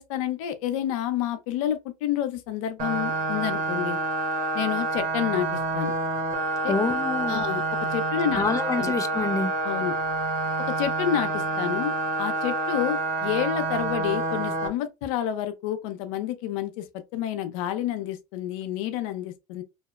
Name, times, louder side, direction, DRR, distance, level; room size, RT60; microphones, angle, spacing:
voice 1, 0.0-4.0 4.5-5.9 6.6-6.7 7.3-7.6 7.9-8.4 8.8-8.9 9.6-9.9 10.7-11.9 12.2-16.8 17.1-19.6, left 11 dB, 80° left, 0.5 m, -29 dB
sound 1, 2.8-14.7, right 3 dB, 55° right, 0.9 m, -28 dB
voice 2, 6.7-7.5 8.3-9.5, left 4 dB, 20° left, 0.4 m, -27 dB
2.7 x 2.0 x 2.3 m
supercardioid pair, 90°, 17 cm